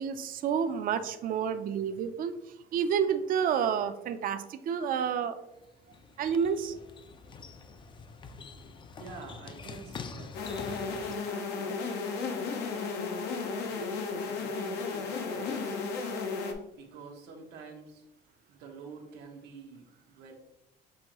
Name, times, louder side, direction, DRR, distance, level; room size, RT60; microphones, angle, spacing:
voice 1, 0.0-2.4 2.7-5.4 6.2-6.7, right 7 dB, 55° right, 10 dB, 0.4 m, -29 dB
sound 1, 5.5-11.2, left 5 dB, 30° left, 0.3 m, -45 dB
voice 2, 9.0-10.3 11.3-14.0 14.2-15.9 16.8-18.1 18.5-20.4, right 4 dB, 90° right, 2 dB, 0.9 m, -47 dB
sound 2, 10.3-16.5, left 4 dB, 85° left, 0.7 m, -34 dB
6.2 x 2.6 x 2.9 m, 0.88 s
cardioid pair, 110°, 17 cm